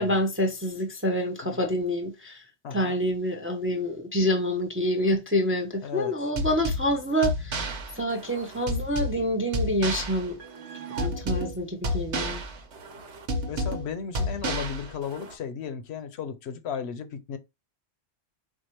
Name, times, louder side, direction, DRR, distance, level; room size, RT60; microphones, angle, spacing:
voice 1, 0.0-2.4 2.7-7.7 7.9-10.4 11.0-12.4, equal, 15° right, 0.5 m, -27 dB
voice 2, 2.6-3.0 5.8-6.1 13.5-17.4, left 7 dB, 70° left, 0.9 m, -35 dB
sound 1, 6.4-15.3, equal, 85° right, 1.2 m, -31 dB
4.4 x 2.4 x 4.4 m
omnidirectional pair, 1.2 m